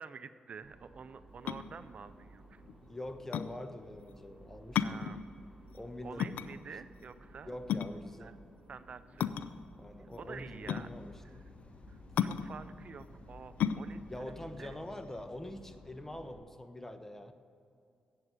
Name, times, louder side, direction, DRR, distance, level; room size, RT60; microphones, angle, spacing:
voice 1, 0.0-2.6 4.8-5.2 6.0-7.6 8.2-8.3 8.7-9.4 10.2-10.9 11.2-11.4 11.9-14.0 14.3-14.8, right 5 dB, 55° right, 13 dB, 0.5 m, -48 dB
sound 1, 0.6-16.4, right 2 dB, 15° right, 2.7 m, -57 dB
sound 2, 1.3-15.7, left 8 dB, 80° left, 0.4 m, -36 dB
voice 2, 2.9-5.0 5.7-6.3 7.4-8.4 9.8-11.5 14.1-17.3, left 1 dB, 15° left, 8 dB, 1.1 m, -45 dB
sound 3, 10.2-16.4, left 4 dB, 50° left, 0.7 m, -56 dB
7.9 x 7.8 x 8.8 m, 2.5 s
supercardioid pair, 50°, 3 cm